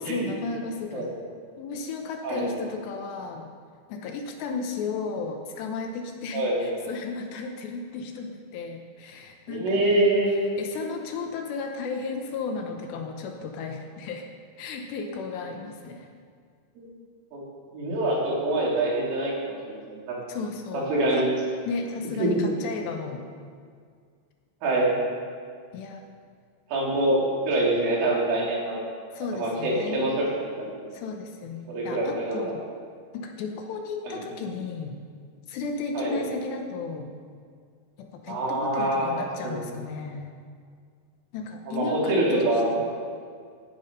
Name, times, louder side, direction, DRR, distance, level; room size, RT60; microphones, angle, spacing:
voice 1, 0.0-1.1 1.6-3.5 3.9-14.3 14.6-16.1 20.3-21.3 21.7-23.3 25.7-26.0 29.1-30.2 30.9-32.6 33.1-35.0 35.5-37.2 38.0-40.4 41.3-42.8, left 4 dB, 75° left, 4 dB, 3.0 m, -34 dB
voice 2, 9.5-10.4 16.8-16.9 17.3-17.4 17.7-19.8 20.1-20.2 20.7-21.3 22.2-22.4 24.6-24.9 26.7-28.8 29.3-30.3 30.6-30.8 31.7-32.5 34.1-34.2 35.9-36.2 38.3-39.1 39.4-39.6 41.7-42.8, right 1 dB, 85° right, -5 dB, 6.1 m, -25 dB
17.5 x 11.0 x 5.4 m, 2.1 s
omnidirectional pair, 5.5 m